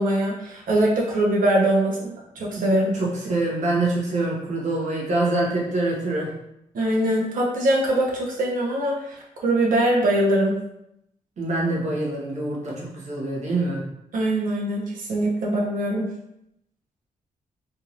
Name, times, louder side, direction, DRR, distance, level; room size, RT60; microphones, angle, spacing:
voice 1, 0.0-3.0 6.7-10.6 14.1-16.1, right 1 dB, 70° right, -2 dB, 1.0 m, -22 dB
voice 2, 2.9-6.3 11.4-13.8, right 2 dB, 55° right, -4 dB, 1.2 m, -25 dB
3.5 x 2.6 x 3.0 m, 0.79 s
wide cardioid pair, 135°, 14 cm